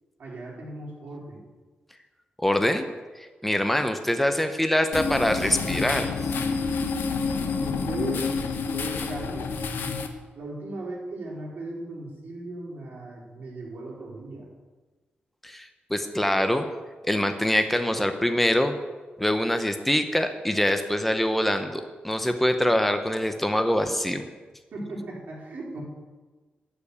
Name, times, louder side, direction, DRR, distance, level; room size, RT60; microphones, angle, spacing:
voice 1, 0.2-1.5 7.5-8.3 8.7-9.5 10.3-14.5 24.7-25.8, right 2 dB, 55° right, -5 dB, 4.2 m, -37 dB
voice 2, 2.4-2.9 3.2-6.1 15.4-16.7 17.1-18.7 19.2-24.2, left 1 dB, 5° left, 7 dB, 0.7 m, -24 dB
sound 1, 4.9-10.1, left 5 dB, 85° left, 1.0 m, -28 dB
11.5 x 5.1 x 8.4 m, 1.3 s
wide cardioid pair, 125°, 3 cm